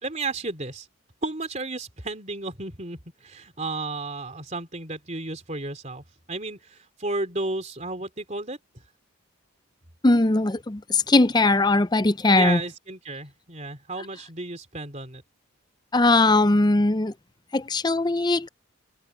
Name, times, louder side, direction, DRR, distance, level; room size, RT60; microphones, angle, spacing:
voice 1, 0.0-0.9 1.2-8.6 12.3-15.2, right 3 dB, 30° right, 3.5 m, -33 dB
voice 2, 10.0-12.6 15.9-17.1 17.5-18.5, left 2 dB, 20° left, 0.5 m, -20 dB
head